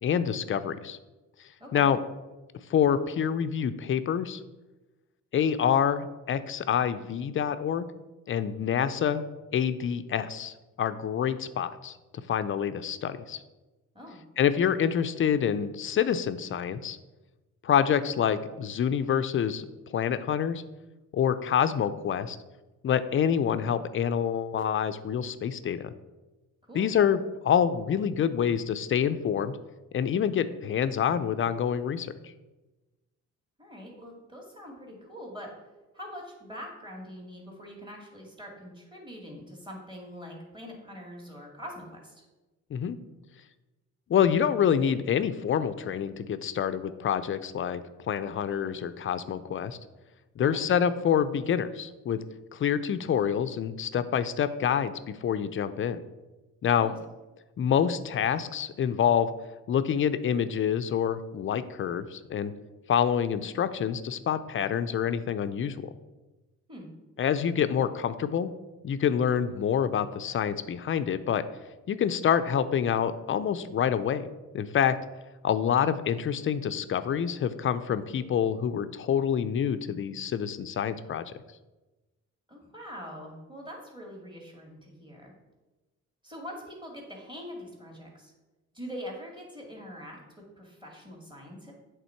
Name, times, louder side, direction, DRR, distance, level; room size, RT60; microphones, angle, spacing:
voice 1, 0.0-1.0 1.7-2.0 2.7-4.4 5.3-7.9 8.3-9.2 9.5-11.9 12.3-13.4 14.4-17.0 17.6-19.7 19.9-20.6 21.1-22.4 22.8-25.9 26.7-29.6 29.9-32.1 42.7-43.0 44.1-47.8 48.1-49.8 50.4-52.2 52.5-56.0 56.6-56.9 57.6-59.3 59.7-62.5 62.9-65.9 67.2-68.5 68.8-71.4 71.9-74.3 74.5-75.0 75.4-81.2, left 8 dB, 45° left, 12 dB, 0.5 m, -27 dB
voice 2, 33.6-35.5 35.9-42.2 50.5-50.7 56.8-56.9 66.7-66.9 82.5-85.3 86.2-88.3 88.7-90.2 90.6-91.7, equal, 15° right, -1 dB, 2.2 m, -43 dB
8.3 x 3.7 x 4.5 m, 1.1 s
cardioid pair, 90°, 30 cm